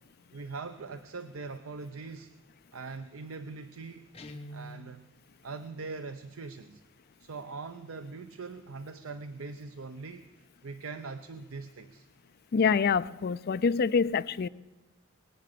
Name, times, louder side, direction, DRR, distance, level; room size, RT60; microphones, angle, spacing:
voice 1, 0.3-2.3 2.7-4.1 4.5-5.0 5.4-6.8 7.2-12.1, right 4 dB, 75° right, 0.7 m, -42 dB
Guitar, 4.1-4.9, left 1 dB, 30° left, 1.3 m, -44 dB
voice 2, 12.5-14.5, left 5 dB, 50° left, 0.4 m, -26 dB
22.0 x 8.7 x 6.8 m
head